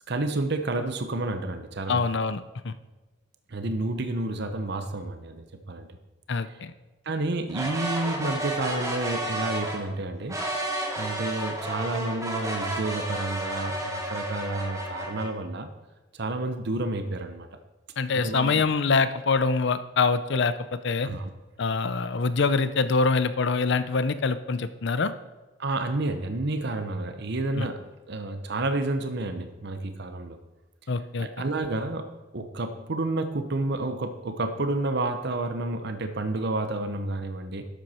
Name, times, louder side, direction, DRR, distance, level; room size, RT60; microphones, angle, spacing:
voice 1, 0.1-2.1 3.5-5.9 7.1-10.4 11.0-15.7 16.1-17.5 18.1-18.7 21.0-21.3 25.6-30.4 31.2-37.6, right 2 dB, 60° right, 8 dB, 0.9 m, -30 dB
voice 2, 1.9-2.7 6.3-6.7 18.0-21.1 21.6-25.1 27.5-27.7 30.9-31.3, left 4 dB, 65° left, 12 dB, 0.6 m, -25 dB
sound 1, 7.5-9.8 10.3-15.2, right 1 dB, 20° right, 2.3 m, -32 dB
11.5 x 7.9 x 4.4 m, 1.2 s
head